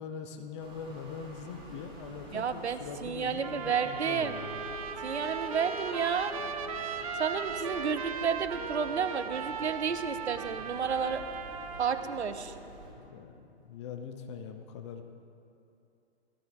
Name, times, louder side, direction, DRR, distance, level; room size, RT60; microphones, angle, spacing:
voice 1, 0.0-4.7 13.0-15.0, left 6 dB, 25° left, 6 dB, 0.6 m, -42 dB
sound 1, 0.6-12.9, right 1 dB, 15° right, 1.9 m, -49 dB
voice 2, 2.3-4.4 5.0-6.4 7.2-11.2 11.8-12.5, right 6 dB, 75° right, 10 dB, 0.8 m, -31 dB
Trumpet, 3.4-12.2, right 7 dB, 35° right, 0.4 m, -38 dB
Bowed string instrument, 3.9-8.8, left 2 dB, 60° left, 1.1 m, -45 dB
16.0 x 12.5 x 2.6 m, 2.7 s
figure-of-eight pair, 125°, 34 cm